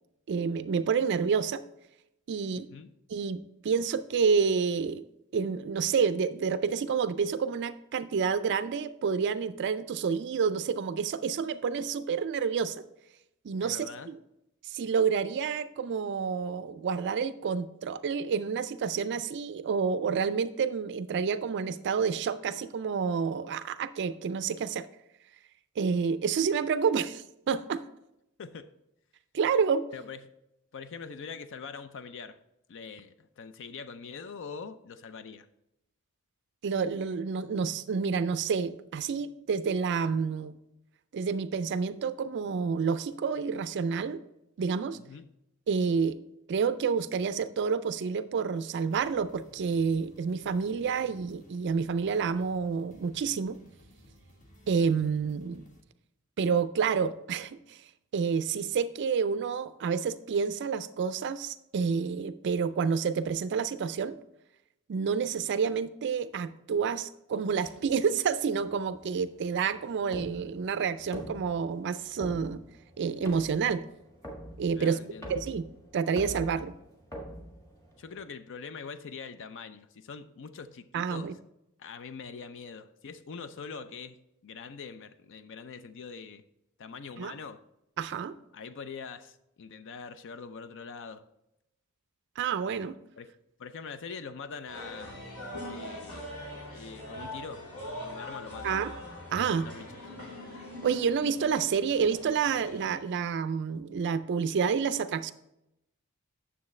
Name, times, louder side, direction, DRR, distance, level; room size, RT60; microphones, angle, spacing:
voice 1, 0.3-1.6 2.3-2.7 3.1-5.0 5.3-12.8 13.4-14.2 14.6-24.9 25.8-27.8 29.3-29.9 36.6-40.5 41.1-44.2 44.6-45.0 45.7-46.2 46.5-53.6 54.7-55.6 56.4-57.8 58.1-64.2 64.9-72.6 73.0-73.8 74.6-75.0 75.3-75.7 75.9-76.7 80.9-81.3 87.2-87.3 88.0-88.4 92.4-93.0 98.6-98.9 99.3-99.7 100.8-105.3, right 6 dB, 55° right, 13 dB, 0.4 m, -29 dB
voice 2, 2.5-2.9 13.6-14.1 28.4-28.7 29.9-30.3 30.7-32.4 32.7-35.5 44.9-45.3 74.7-75.3 78.0-81.3 81.8-86.4 86.8-87.6 88.5-91.2 93.2-93.3 93.6-95.3 95.7-96.3 96.7-97.7 98.0-98.8 99.6-100.0, left 5 dB, 60° left, 12 dB, 0.5 m, -43 dB
sound 1, 48.7-55.8, equal, 35° left, 1.4 m, -57 dB
sound 2, 67.6-78.2, equal, 15° left, 1.7 m, -45 dB
sound 3, 94.7-103.0, left 1 dB, 80° left, 3.2 m, -42 dB
9.6 x 7.0 x 3.2 m, 0.84 s
head